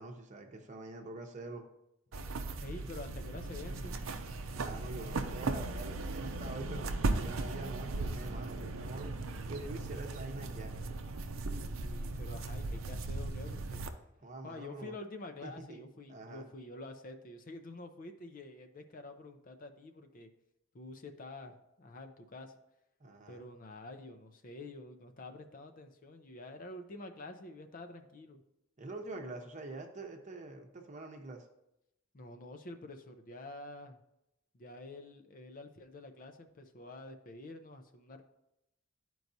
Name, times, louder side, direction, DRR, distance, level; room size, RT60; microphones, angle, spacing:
voice 1, 0.0-1.7 4.6-9.1 9.5-10.7 14.2-14.9 15.4-16.5 23.0-23.4 28.8-31.5, right 2 dB, 35° right, 4 dB, 0.8 m, -45 dB
sound 1, 2.1-13.9, right 2 dB, 90° right, 0.6 m, -37 dB
voice 2, 2.6-4.0 11.7-13.8 14.4-20.3 20.7-22.6 23.3-28.4 32.1-34.0 34.5-38.2, left 2 dB, 45° left, 6 dB, 0.6 m, -48 dB
11.5 x 4.6 x 2.7 m, 0.85 s
head